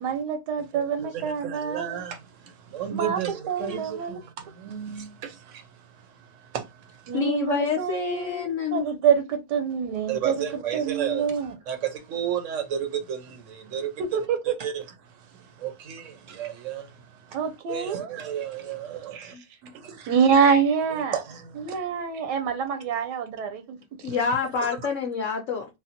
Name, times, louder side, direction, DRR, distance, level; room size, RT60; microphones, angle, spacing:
voice 1, 0.0-2.0 2.9-3.2 3.5-4.2 7.1-10.4 10.7-11.5 14.0-14.6 17.3-18.1 19.1-19.3 20.1-21.2 21.6-24.2, right 6 dB, 85° right, 1.2 m, -26 dB
voice 2, 0.7-7.1 10.1-17.4 17.7-19.4 19.6-20.1 20.9-21.8 24.1-24.2 24.6-24.8, right 9 dB, 70° right, 0.8 m, -34 dB
voice 3, 7.1-8.9 19.3-19.4 24.0-25.7, left 6 dB, 65° left, 0.8 m, -27 dB
3.5 x 2.1 x 2.7 m
omnidirectional pair, 1.8 m